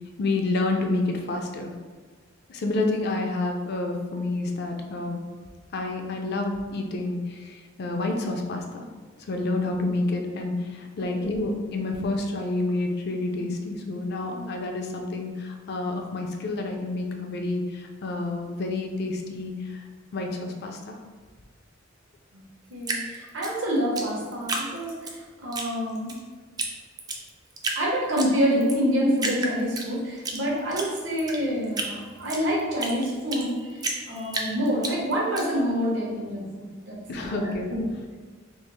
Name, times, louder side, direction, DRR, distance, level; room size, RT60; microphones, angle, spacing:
voice 1, 0.2-1.7 2.5-5.2 5.7-8.8 9.2-19.8 20.1-21.0 37.1-37.7, left 2 dB, 55° left, 3 dB, 0.4 m, -29 dB
voice 2, 22.7-26.2 27.8-37.9, equal, 75° right, -4 dB, 0.9 m, -27 dB
Drip, 22.8-25.1 25.5-26.2 26.6-26.7 27.0-27.8 28.2-28.8 29.2-30.4 30.7-33.5 33.8-35.4, right 3 dB, 20° right, 0.3 m, -31 dB
3.2 x 2.4 x 3.3 m, 1.5 s
head